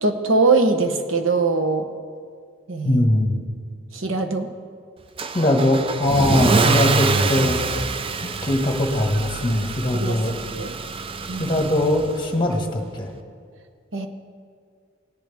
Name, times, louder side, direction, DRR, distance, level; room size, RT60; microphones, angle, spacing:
voice 1, 0.0-1.9 2.7-3.1 3.9-4.5 9.9-10.2 10.5-10.7 11.3-11.6 13.9-14.1, right 3 dB, 80° right, 6 dB, 1.0 m, -21 dB
voice 2, 2.8-3.4 5.3-7.6 8.2-10.3 11.4-13.1, left 1 dB, 25° left, 2 dB, 1.5 m, -21 dB
Car / Engine starting / Accelerating revving vroom, 5.2-12.3, right 4 dB, 30° right, 0.4 m, -25 dB
18.0 x 10.5 x 3.5 m, 2.1 s
head